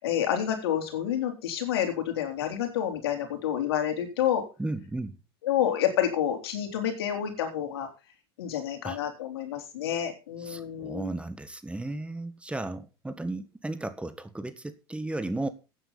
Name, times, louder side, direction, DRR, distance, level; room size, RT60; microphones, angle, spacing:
voice 1, 0.0-4.4 5.4-7.9 8.4-11.1, left 10 dB, 80° left, 3.7 m, -29 dB
voice 2, 4.6-5.2 8.8-9.0 10.4-15.5, right 2 dB, 10° right, 1.5 m, -34 dB
14.5 x 9.7 x 4.1 m
hypercardioid pair, 85°, 13 cm